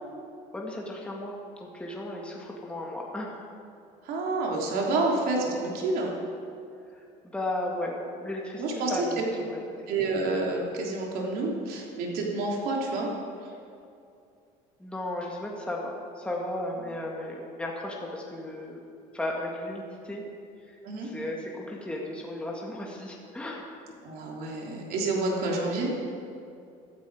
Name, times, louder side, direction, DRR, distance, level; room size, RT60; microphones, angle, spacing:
voice 1, 0.5-3.4 7.2-9.2 9.5-9.6 14.8-18.8 19.1-20.2 20.7-23.7, left 1 dB, 5° left, -2 dB, 2.0 m, -35 dB
voice 2, 4.0-6.1 8.6-8.9 9.9-13.1 20.8-21.1 24.0-25.9, right 2 dB, 75° right, -1 dB, 3.3 m, -28 dB
15.5 x 13.0 x 4.9 m, 2.5 s
cardioid pair, 120°, 16 cm